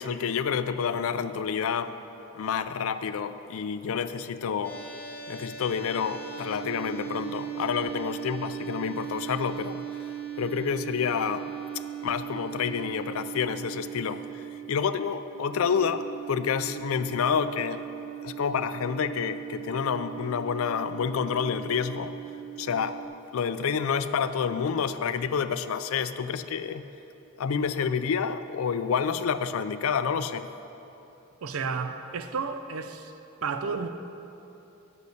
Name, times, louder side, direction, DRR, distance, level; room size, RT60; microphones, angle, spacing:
voice 1, 0.0-1.9 2.3-4.8 5.3-9.8 10.4-11.5 12.0-14.4 14.7-17.8 18.2-22.1 22.6-23.0 23.3-26.8 27.4-30.5, left 6 dB, 70° left, 0.4 m, -28 dB
sound 1, 4.6-23.1, right 10 dB, 10° left, 1.6 m, -39 dB
voice 2, 31.4-33.1 33.4-33.9, right 5 dB, 85° right, 0.5 m, -32 dB
10.5 x 6.5 x 6.5 m
head